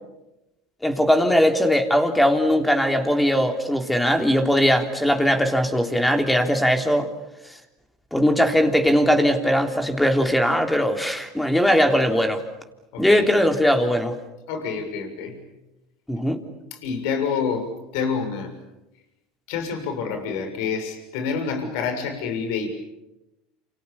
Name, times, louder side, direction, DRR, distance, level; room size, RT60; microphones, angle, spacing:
voice 1, 0.8-7.1 8.1-12.4 13.0-14.1 16.1-16.4, equal, 5° left, 5 dB, 3.5 m, -20 dB
voice 2, 12.9-13.3 14.5-15.4 16.7-18.5 19.5-22.7, left 5 dB, 70° left, 6 dB, 6.9 m, -27 dB
28.5 x 28.5 x 7.2 m, 0.94 s
supercardioid pair, 100°, 0 cm